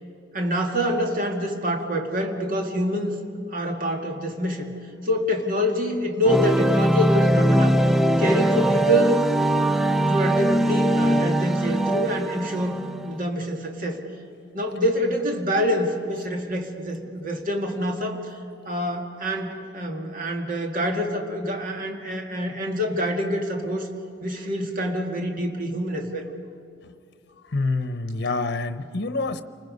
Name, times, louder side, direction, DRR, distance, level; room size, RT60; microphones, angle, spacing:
voice 1, 0.3-3.1 3.5-4.7 5.0-7.8 8.2-9.2 10.0-14.0 14.5-18.2 18.7-23.9 24.2-26.3, equal, 50° right, 2 dB, 2.1 m, -26 dB
sound 1, 6.2-13.1, right 1 dB, ahead, 0.5 m, -21 dB
voice 2, 27.5-29.4, left 3 dB, 65° left, 11 dB, 0.9 m, -26 dB
29.5 x 20.0 x 5.4 m, 2.4 s
head